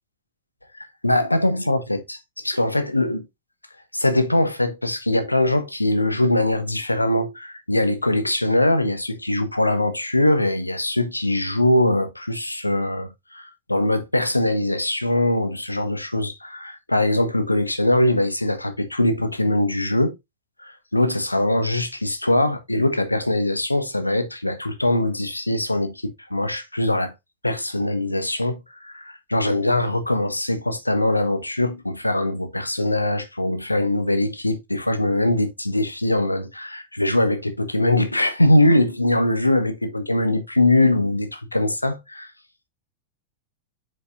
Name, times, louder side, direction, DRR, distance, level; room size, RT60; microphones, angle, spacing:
voice 1, 0.7-3.3 3.9-20.1 20.6-27.1 27.4-42.3, left 1 dB, 85° left, 1.1 m, -22 dB
7.9 x 5.9 x 2.5 m
figure-of-eight pair, 90°, 0 cm